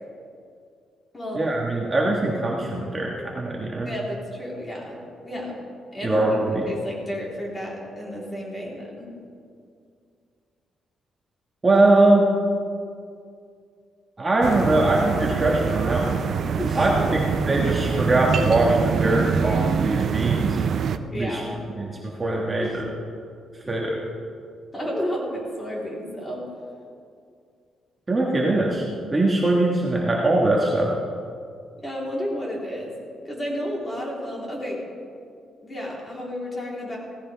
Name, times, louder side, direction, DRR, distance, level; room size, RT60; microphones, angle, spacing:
voice 1, 1.3-3.9 6.0-6.6 11.6-12.3 14.2-16.2 16.7-20.6 21.1-21.4 21.7-22.9 23.7-24.0 28.1-30.9, right 2 dB, 20° right, -3 dB, 1.5 m, -22 dB
voice 2, 3.9-5.6 5.9-6.2 6.7-9.1 16.6-17.2 20.9-21.5 22.6-22.8 24.7-26.4 31.8-32.9 33.2-34.8 35.6-37.0, equal, 20° left, -4 dB, 3.7 m, -32 dB
sound 1, 14.4-21.0, right 6 dB, 55° right, 0.5 m, -24 dB
17.0 x 15.0 x 3.5 m, 2.3 s
cardioid pair, 135°, 0 cm